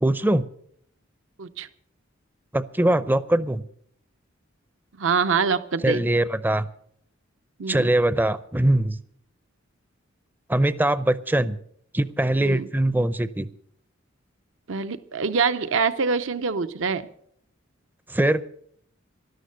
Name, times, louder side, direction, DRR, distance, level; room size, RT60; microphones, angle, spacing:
voice 1, 0.0-0.4 2.5-3.6 5.8-6.7 7.7-9.0 10.5-11.6 11.9-13.5 18.1-18.4, right 1 dB, 10° right, 15 dB, 0.5 m, -22 dB
voice 2, 5.0-6.1 7.6-7.9 12.4-12.7 14.7-17.1, right 5 dB, 70° right, 12 dB, 0.7 m, -25 dB
13.0 x 12.0 x 6.6 m, 0.65 s
head